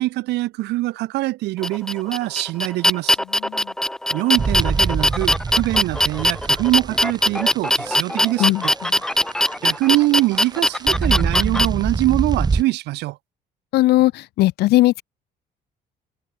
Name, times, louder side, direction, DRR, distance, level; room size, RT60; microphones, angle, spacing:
voice 1, 0.0-3.2 4.1-8.7 9.6-13.2, right 18 dB, 80° right, 1.2 m, -23 dB
sound 1, 1.6-11.7, left 1 dB, 5° left, 0.4 m, -20 dB
voice 2, 3.3-3.7 8.1-9.0 13.7-15.0, left 17 dB, 80° left, 0.9 m, -19 dB
sound 2, 4.4-12.6, right 4 dB, 25° right, 2.8 m, -26 dB
cardioid pair, 110°, 17 cm